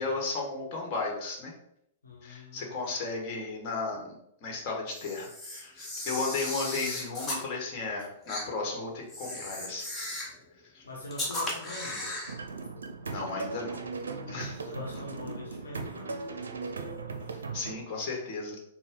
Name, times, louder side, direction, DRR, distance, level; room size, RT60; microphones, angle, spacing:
voice 1, 0.0-1.5 2.2-10.3 10.7-10.8 13.1-13.8 14.3-14.6 17.5-18.6, left 3 dB, 45° left, 0 dB, 1.2 m, -35 dB
voice 2, 2.0-2.9 10.8-12.2 13.8-14.1 14.6-16.2, left 2 dB, 80° left, -3 dB, 0.9 m, -44 dB
Camera, 4.9-7.4 8.3-8.5 9.1-10.4 11.1-12.3, left 1 dB, 20° left, 1.2 m, -36 dB
sound 1, 12.3-17.7, right 3 dB, 80° right, 0.4 m, -38 dB
4.3 x 2.1 x 3.6 m, 0.74 s
figure-of-eight pair, 105°, 0 cm